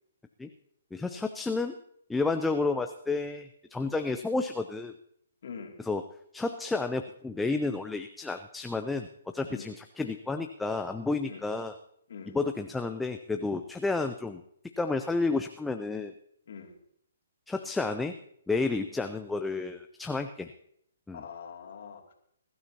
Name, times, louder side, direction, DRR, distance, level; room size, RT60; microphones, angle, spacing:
voice 1, 0.9-1.8 2.1-4.9 5.9-6.0 6.3-9.1 9.3-11.7 12.3-14.4 14.8-16.1 17.5-18.2 18.5-20.5 21.1-21.2, left 3 dB, 5° left, 7 dB, 0.5 m, -31 dB
voice 2, 5.4-5.8 9.5-9.7 11.3-11.4 12.1-12.4 16.5-16.7 21.1-22.1, left 6 dB, 60° left, 1 dB, 2.5 m, -43 dB
21.5 x 12.5 x 2.9 m, 0.70 s
hypercardioid pair, 145°, 0 cm